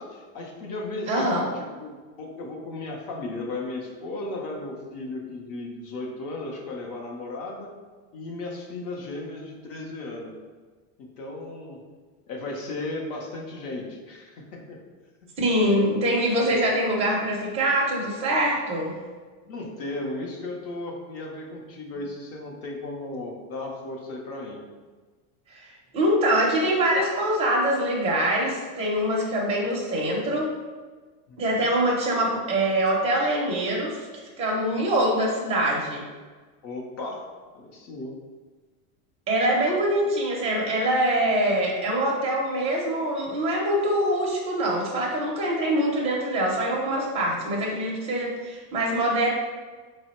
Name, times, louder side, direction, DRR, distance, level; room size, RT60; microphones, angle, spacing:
voice 1, 0.0-7.7 8.1-10.3 11.2-11.8 12.3-14.8 15.4-15.9 16.2-16.6 19.4-24.6 31.3-31.7 36.6-37.2 37.5-38.1, left 2 dB, 35° left, 0 dB, 0.6 m, -35 dB
voice 2, 1.1-1.5 15.4-18.9 25.5-30.5 31.4-34.0 34.4-36.0 39.3-49.3, right 1 dB, 15° right, -3 dB, 0.5 m, -24 dB
3.5 x 2.0 x 4.1 m, 1.4 s
supercardioid pair, 155°, 44 cm